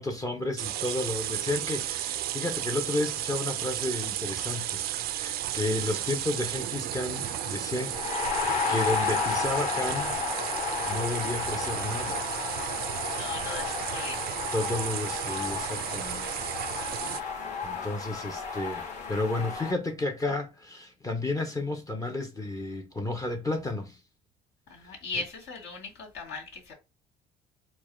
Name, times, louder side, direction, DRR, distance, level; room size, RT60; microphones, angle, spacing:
voice 1, 0.0-8.0 8.7-10.1 10.9-12.3 14.5-16.5 17.1-17.4 17.6-24.0 24.8-24.9, left 2 dB, 20° left, 0.6 m, -32 dB
sound 1, 0.6-17.2, right 13 dB, 60° right, 0.4 m, -34 dB
sound 2, 5.1-5.2 5.4-19.7, left 5 dB, 40° left, 1.3 m, -33 dB
voice 2, 13.2-14.2 17.0-17.5 24.7-26.7, left 3 dB, 65° left, 2.1 m, -39 dB
4.5 x 2.1 x 3.1 m
supercardioid pair, 95°, 18 cm